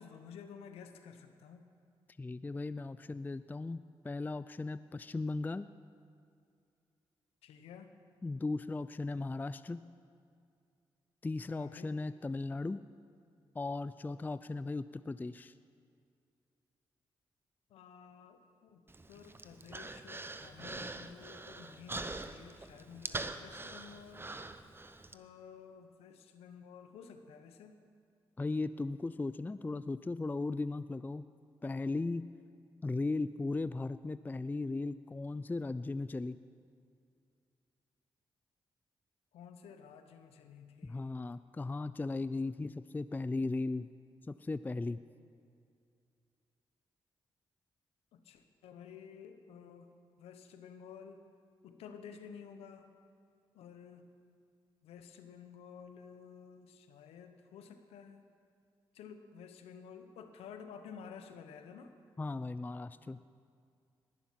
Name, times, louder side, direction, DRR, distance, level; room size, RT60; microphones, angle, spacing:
voice 1, 0.0-1.7 7.4-7.9 11.5-12.0 17.7-18.8 19.1-24.3 25.1-27.8 39.3-41.2 48.1-49.9 50.2-51.2 51.6-52.9 53.5-54.1 54.8-58.3 58.9-61.9, left 7 dB, 90° left, 8 dB, 0.8 m, -52 dB
voice 2, 2.2-5.7 8.2-9.8 11.2-12.8 13.5-15.5 28.4-31.2 31.6-32.2 32.8-36.4 40.8-43.9 44.3-45.0 62.2-63.2, left 3 dB, 20° left, 14 dB, 0.3 m, -37 dB
Human voice, 18.9-25.1, right 2 dB, 20° right, 0.8 m, -44 dB
19.5 x 7.2 x 5.8 m, 2.4 s
supercardioid pair, 50°, 10 cm